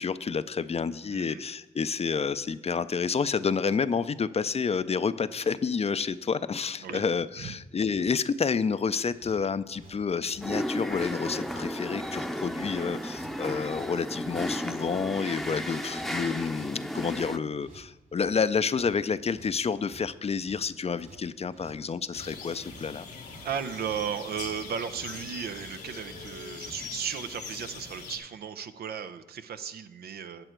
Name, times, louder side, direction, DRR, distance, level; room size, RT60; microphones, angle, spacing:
voice 1, 0.0-23.1, left 5 dB, 40° left, 14 dB, 0.5 m, -29 dB
voice 2, 1.1-1.4 6.8-7.0 7.4-7.5 23.4-30.5, right 7 dB, 75° right, 10 dB, 0.6 m, -35 dB
sound 1, 9.0-26.9, right 2 dB, 60° right, 3.2 m, -53 dB
sound 2, 10.4-17.4, equal, ahead, 0.7 m, -34 dB
sound 3, 22.1-28.2, left 5 dB, 90° left, 1.2 m, -42 dB
8.9 x 7.7 x 4.5 m, 0.99 s
supercardioid pair, 40°, 16 cm